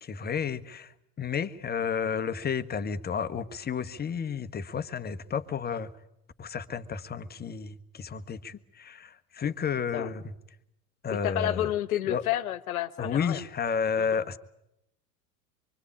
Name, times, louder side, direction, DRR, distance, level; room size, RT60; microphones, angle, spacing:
voice 1, 0.0-5.9 6.4-10.3 11.0-11.7 12.1-12.2 13.0-14.4, left 6 dB, 20° left, 1.3 m, -31 dB
voice 2, 11.2-13.4 14.0-14.2, left 13 dB, 75° left, 1.4 m, -30 dB
25.0 x 23.5 x 8.6 m
hypercardioid pair, 90°, 44 cm